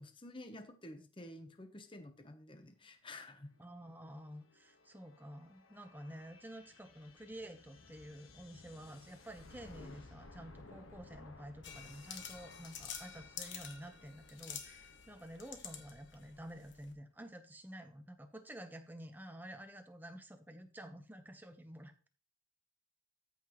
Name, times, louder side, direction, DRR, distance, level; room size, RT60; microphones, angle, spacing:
voice 1, 0.0-3.5, left 1 dB, 25° left, 0.9 m, -51 dB
sound 1, 3.2-16.7, left 2 dB, 85° left, 1.4 m, -59 dB
voice 2, 3.6-22.1, equal, 10° right, 0.9 m, -50 dB
sound 2, 11.6-16.9, left 8 dB, 65° left, 1.2 m, -49 dB
13.5 x 5.9 x 3.0 m
head